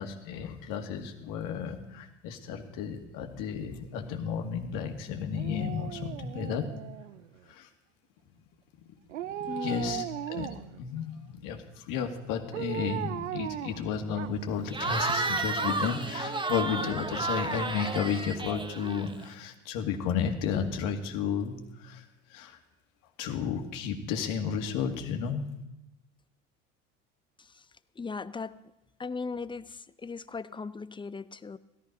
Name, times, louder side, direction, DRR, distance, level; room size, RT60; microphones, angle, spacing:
voice 1, 0.0-6.7 7.5-7.7 9.6-10.0 10.3-10.5 10.8-22.6 23.2-25.5, left 7 dB, 60° left, 4 dB, 2.1 m, -33 dB
Dog, 5.3-7.4 9.1-10.8 12.5-14.6 15.0-15.1, right 12 dB, 85° right, 0.6 m, -38 dB
voice 2, 9.5-10.1 27.4-27.7 28.0-28.6 29.0-31.6, left 4 dB, 15° left, 15 dB, 0.6 m, -38 dB
Cheering / Crowd, 14.7-19.3, right 3 dB, 15° right, 1.1 m, -32 dB
17.0 x 13.0 x 5.3 m, 0.93 s
hypercardioid pair, 65°, 37 cm